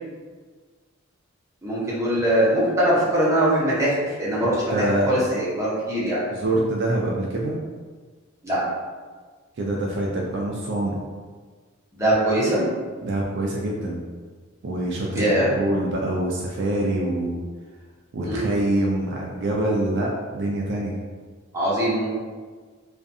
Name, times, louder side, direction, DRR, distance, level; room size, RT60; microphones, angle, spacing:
voice 1, 1.6-6.2 8.4-8.6 11.9-12.7 15.1-15.5 18.2-18.5 21.5-22.1, right 1 dB, 15° right, -9 dB, 0.7 m, -22 dB
voice 2, 4.7-5.2 6.3-7.6 9.6-11.0 13.0-14.0 14.6-17.4 18.1-21.0, right 1 dB, 55° right, -2 dB, 0.3 m, -25 dB
2.5 x 2.4 x 2.6 m, 1.5 s
head